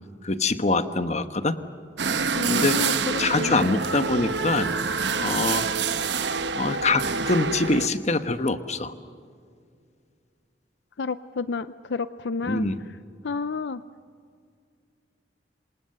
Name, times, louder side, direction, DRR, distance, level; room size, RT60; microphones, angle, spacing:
voice 1, 0.2-1.6 2.5-4.7 5.2-5.7 6.6-8.9 12.5-12.8, left 3 dB, 40° left, 10 dB, 1.2 m, -24 dB
sound 1, 2.0-7.9, right 5 dB, 75° right, 1.1 m, -27 dB
voice 2, 2.3-3.7 11.0-12.7 13.2-13.8, left 4 dB, 70° left, 13 dB, 0.6 m, -30 dB
27.5 x 26.5 x 6.8 m, 2.2 s
head